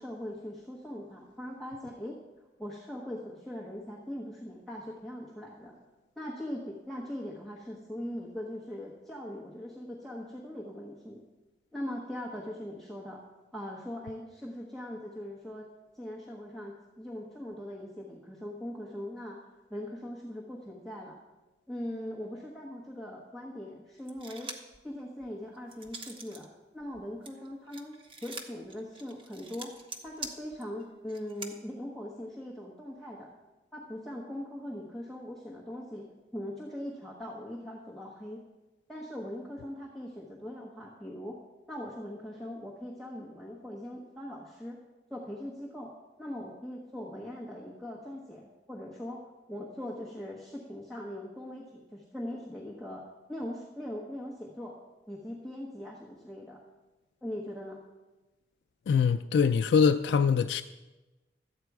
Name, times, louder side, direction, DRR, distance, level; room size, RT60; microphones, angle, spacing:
voice 1, 0.0-2.2 2.6-5.8 6.2-11.2 11.7-13.2 13.5-15.7 15.9-19.4 19.7-21.2 21.7-24.5 24.8-26.5 26.7-29.8 30.0-33.3 33.7-36.1 36.3-38.4 38.9-41.4 41.7-44.8 45.1-45.9 46.2-53.0 53.3-54.7 55.1-56.6 57.2-57.8, left 1 dB, ahead, 1.1 m, -41 dB
sound 1, 24.1-24.8 25.2-26.5 26.8-31.5, right 3 dB, 30° right, 0.9 m, -44 dB
voice 2, 58.9-60.6, left 6 dB, 80° left, 0.3 m, -23 dB
12.5 x 8.4 x 4.7 m
head